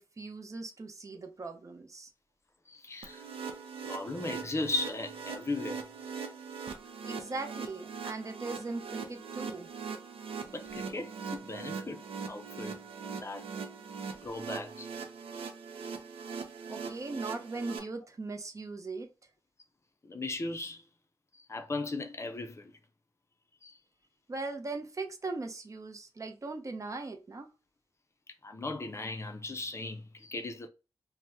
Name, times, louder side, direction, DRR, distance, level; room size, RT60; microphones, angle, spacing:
voice 1, 0.0-2.1 7.0-9.7 16.7-19.1 24.3-27.5, right 3 dB, 35° right, 0.6 m, -39 dB
voice 2, 2.7-3.2 3.9-5.8 10.5-12.7 13.2-13.5 14.2-14.9 20.0-20.8 21.3-22.7 23.6-23.8 28.4-30.7, left 2 dB, 30° left, 0.5 m, -37 dB
sound 1, 3.0-17.8, right 5 dB, 90° right, 0.5 m, -41 dB
2.8 x 2.1 x 3.4 m
wide cardioid pair, 85°, 9 cm